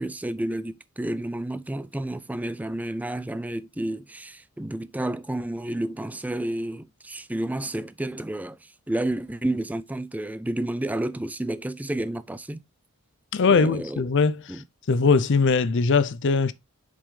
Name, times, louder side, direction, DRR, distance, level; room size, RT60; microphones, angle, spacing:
voice 1, 0.0-12.6 13.5-14.0 14.5-14.6, right 1 dB, 5° right, 0.3 m, -30 dB
voice 2, 13.3-14.6 14.9-16.5, left 4 dB, 55° left, 0.5 m, -21 dB
7.1 x 5.2 x 3.2 m
head